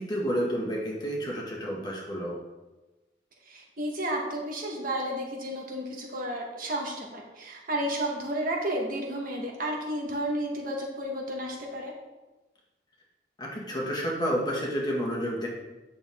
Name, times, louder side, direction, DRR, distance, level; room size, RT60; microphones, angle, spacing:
voice 1, 0.0-2.4 13.4-15.5, equal, 25° left, -3 dB, 1.8 m, -30 dB
voice 2, 3.4-11.9, right 1 dB, 50° right, 0 dB, 1.4 m, -32 dB
8.6 x 6.3 x 3.6 m, 1.1 s
head